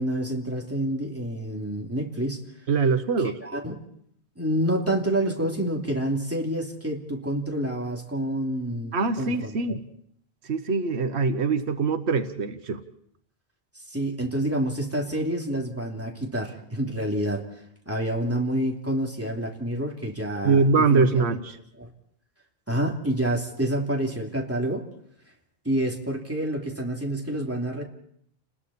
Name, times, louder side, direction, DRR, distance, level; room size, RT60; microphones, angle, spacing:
voice 1, 0.0-2.4 3.2-3.7 4.4-9.8 13.9-17.4 17.9-21.0 21.8-21.9 22.7-24.9 25.6-27.8, right 1 dB, 15° right, -1 dB, 2.9 m, -28 dB
voice 2, 2.7-3.4 8.9-9.8 10.4-12.8 20.4-21.6, right 4 dB, 90° right, 9 dB, 1.3 m, -23 dB
30.0 x 20.5 x 4.3 m, 0.70 s
omnidirectional pair, 1.1 m